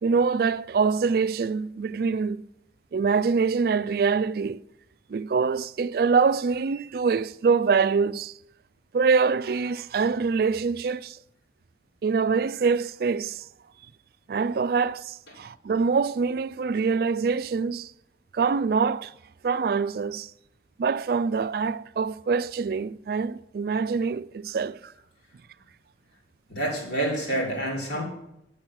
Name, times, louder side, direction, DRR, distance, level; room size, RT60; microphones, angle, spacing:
voice 1, 0.0-2.4 2.9-4.6 5.1-8.3 8.9-11.2 12.0-13.4 14.3-17.9 18.3-19.1 19.4-20.3 20.8-24.9, right 5 dB, 55° right, 0.3 m, -24 dB
voice 2, 26.5-28.0, right 1 dB, 85° left, 3.7 m, -28 dB
9.7 x 6.5 x 6.1 m
head